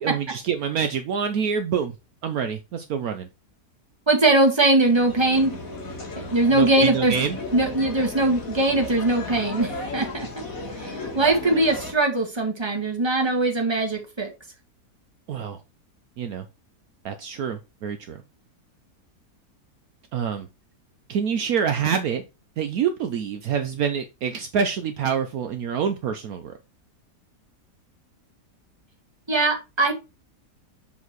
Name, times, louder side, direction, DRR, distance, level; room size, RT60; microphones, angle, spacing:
voice 1, 0.0-2.0 2.2-3.3 6.5-7.4 11.5-11.6 15.3-15.6 16.2-16.4 17.0-18.2 20.1-20.5 21.1-22.2 22.6-26.5, right 7 dB, 65° right, 1.1 m, -26 dB
voice 2, 4.1-5.5 6.2-7.1 7.5-10.4 10.7-14.3 29.3-29.9, right 2 dB, 15° right, 1.8 m, -21 dB
sound 1, 4.8-11.9, left 2 dB, 55° left, 2.5 m, -35 dB
7.2 x 4.2 x 4.6 m
omnidirectional pair, 1.8 m